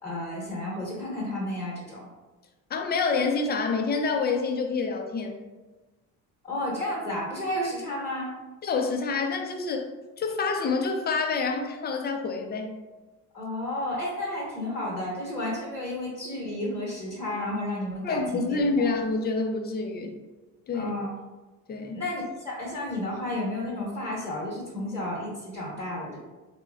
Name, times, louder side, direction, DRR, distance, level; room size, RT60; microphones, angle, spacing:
voice 1, 0.0-2.1 6.4-8.3 13.3-18.9 20.7-21.1 21.9-26.2, left 1 dB, 5° left, -6 dB, 1.0 m, -32 dB
voice 2, 2.7-5.5 8.6-9.9 10.2-12.8 18.0-20.1 20.7-20.9 21.7-22.0, left 4 dB, 25° left, 4 dB, 0.4 m, -27 dB
3.0 x 2.3 x 2.2 m, 1.2 s
supercardioid pair, 75°, 39 cm